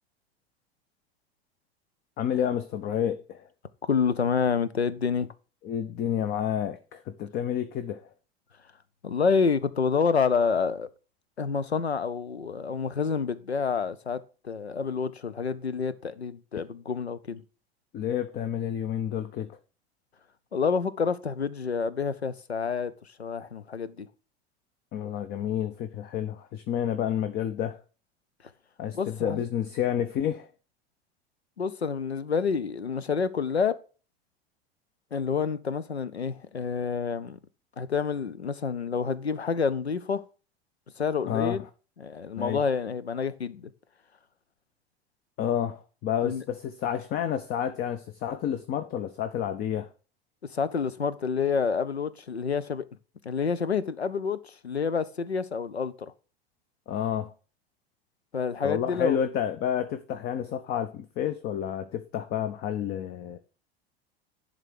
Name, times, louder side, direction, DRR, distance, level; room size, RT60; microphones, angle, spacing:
voice 1, 2.2-3.5 5.6-8.1 17.9-19.6 24.9-27.8 28.8-30.5 41.3-41.6 42.4-42.6 45.4-49.9 56.9-57.3 58.6-63.4, left 9 dB, 30° left, 0.7 m, -30 dB
voice 2, 3.8-5.3 9.0-10.9 11.4-17.4 20.5-22.9 23.2-24.1 28.9-29.4 31.6-33.8 35.1-37.4 37.8-40.2 41.0-41.6 42.0-43.7 46.2-46.4 50.5-52.8 53.2-56.1 58.3-59.2, left 5 dB, 85° left, 0.6 m, -28 dB
10.5 x 3.7 x 6.6 m
figure-of-eight pair, 85°, 31 cm